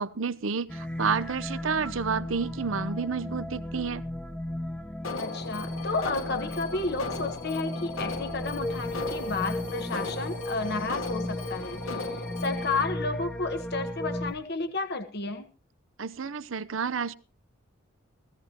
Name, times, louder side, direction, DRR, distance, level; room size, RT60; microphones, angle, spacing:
voice 1, 0.0-4.0 16.0-17.1, right 5 dB, 65° right, 0.7 m, -30 dB
sound 1, 0.7-14.3, left 1 dB, 5° left, 0.9 m, -35 dB
Alarm, 5.0-12.8, left 3 dB, 80° left, 1.8 m, -37 dB
voice 2, 5.2-15.5, left 3 dB, 50° left, 1.1 m, -32 dB
17.0 x 15.5 x 3.0 m
head